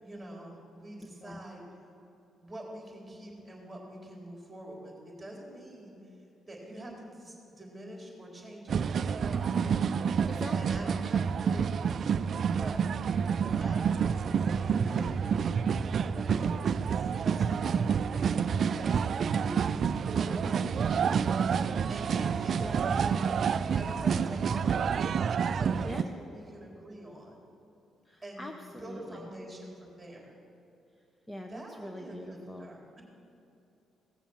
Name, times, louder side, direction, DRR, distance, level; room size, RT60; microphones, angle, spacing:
voice 1, 0.0-1.6 2.4-6.0 6.5-9.8 10.5-15.1 16.0-18.0 18.3-19.6 20.0-21.2 21.9-22.6 22.9-25.1 25.6-27.4 28.2-28.5 28.8-30.3 31.5-33.0, right 1 dB, 10° right, -1 dB, 3.9 m, -45 dB
sound 1, 8.7-26.0, right 6 dB, 55° right, 0.3 m, -28 dB
voice 2, 10.2-10.9 14.7-15.2 20.4-20.7 22.6-23.0 25.8-26.1 28.1-29.2 31.3-32.7, equal, 15° left, 4 dB, 0.8 m, -42 dB
17.0 x 7.0 x 7.3 m, 2.8 s
cardioid pair, 90°, 0 cm